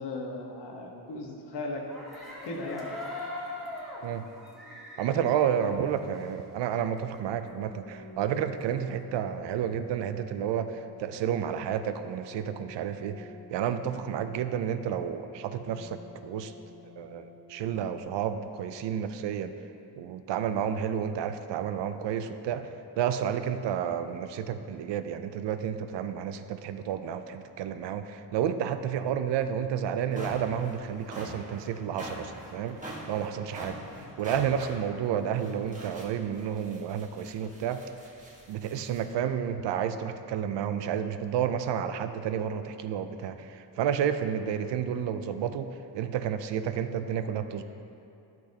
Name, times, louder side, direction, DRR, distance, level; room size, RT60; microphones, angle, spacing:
voice 1, 0.0-1.8 2.4-2.9 5.6-5.9 33.9-34.1, left 2 dB, 70° left, 0 dB, 1.3 m, -37 dB
sound 1, 1.9-6.5 6.8-6.9 7.1-9.0, left 2 dB, ahead, 1.8 m, -41 dB
voice 2, 5.0-16.5 17.0-19.5 20.0-32.8 33.1-33.8 34.2-37.8 38.5-47.6, right 8 dB, 80° right, 10 dB, 0.5 m, -31 dB
sound 2, 7.4-18.0, left 1 dB, 20° left, 1.3 m, -51 dB
sound 3, 29.4-29.5 29.9-39.1, right 1 dB, 15° right, 1.4 m, -44 dB
12.0 x 6.0 x 2.8 m, 2.7 s
cardioid pair, 115°, 43 cm